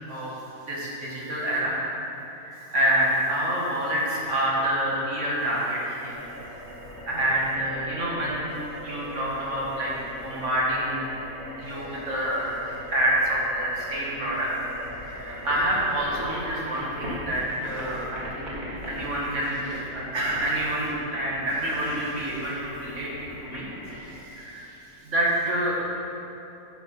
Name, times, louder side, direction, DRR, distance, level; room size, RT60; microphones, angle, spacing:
voice 1, 0.6-1.8 2.4-6.2 7.1-8.5 8.8-11.1 11.6-14.7 15.1-18.6 18.9-23.1 23.4-23.7 23.9-24.7 25.0-25.8, right 1 dB, 55° right, -5 dB, 2.0 m, -27 dB
sound 1, 6.1-24.1, equal, 30° right, 1.7 m, -40 dB
9.5 x 6.2 x 5.5 m, 3.0 s
omnidirectional pair, 1.5 m